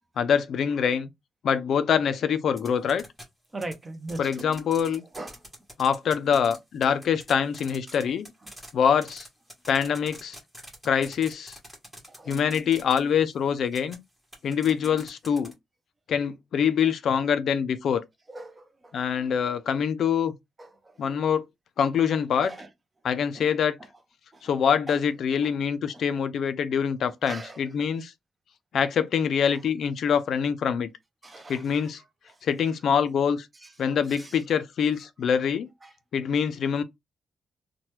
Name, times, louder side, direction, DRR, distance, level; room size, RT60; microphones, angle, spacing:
voice 1, 0.2-1.1 1.4-3.0 4.2-5.0 5.8-8.3 8.7-9.3 9.7-10.4 10.8-11.6 12.3-14.0 14.4-15.5 16.1-18.0 18.9-20.3 21.0-21.5 21.8-22.5 23.0-23.8 24.4-28.1 28.7-30.9 31.5-32.0 32.4-33.5 33.8-35.7 36.1-36.8, left 7 dB, 65° left, 0.4 m, -25 dB
sound 1, 2.6-3.2 3.6-6.6 6.8-13.0 13.7-13.9 14.3-15.5, equal, ahead, 1.1 m, -44 dB
voice 2, 3.5-4.5 4.9-5.5 12.1-12.4 18.3-18.9 20.6-21.0 22.4-22.7 23.4-23.5 23.8-23.9 24.3-24.6 24.9-25.0 25.4-25.5 25.9-26.0 27.2-27.6 31.2-32.4 33.6-33.7 34.2-34.4 35.8-35.9, right 2 dB, 20° right, 0.6 m, -41 dB
2.8 x 2.1 x 3.1 m
cardioid pair, 135°, 0 cm